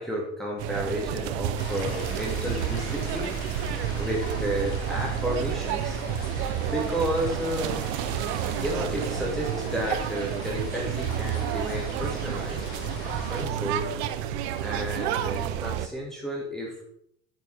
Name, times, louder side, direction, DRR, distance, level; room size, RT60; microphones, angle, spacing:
voice 1, 0.0-3.4 4.0-6.0 6.7-7.7 8.6-12.6 13.3-13.9 14.6-16.8, equal, ahead, -3 dB, 2.0 m, -32 dB
sound 1, 0.6-15.9, right 10 dB, 65° right, 0.7 m, -30 dB
sound 2, 1.6-13.4, equal, 65° left, 2.4 m, -37 dB
7.8 x 7.3 x 3.4 m, 0.70 s
hypercardioid pair, 65°, 36 cm